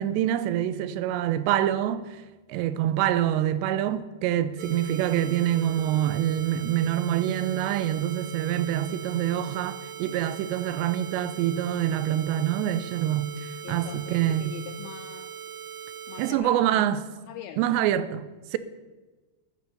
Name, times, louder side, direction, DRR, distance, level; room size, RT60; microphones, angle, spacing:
voice 1, 0.0-2.1 2.5-14.5 16.2-17.0 17.6-18.6, right 11 dB, 90° right, 2.9 m, -26 dB
sound 1, 4.6-16.3, right 8 dB, 70° right, 1.6 m, -40 dB
voice 2, 13.6-15.3 16.1-17.6, left 10 dB, 80° left, 2.3 m, -43 dB
13.0 x 9.6 x 6.8 m
omnidirectional pair, 4.8 m